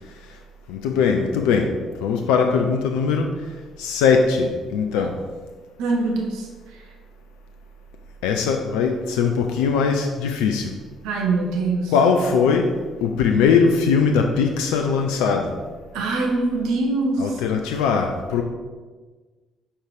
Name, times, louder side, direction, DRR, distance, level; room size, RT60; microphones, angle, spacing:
voice 1, 0.7-1.7 2.0-3.3 3.8-5.1 8.2-10.7 11.9-12.7 13.0-15.5 17.2-18.4, left 5 dB, 75° left, 4 dB, 0.6 m, -20 dB
voice 2, 5.8-6.8 11.0-12.0 15.9-17.4, right 3 dB, 75° right, 1 dB, 1.3 m, -23 dB
7.1 x 4.8 x 5.2 m, 1.3 s
hypercardioid pair, 50°, 0 cm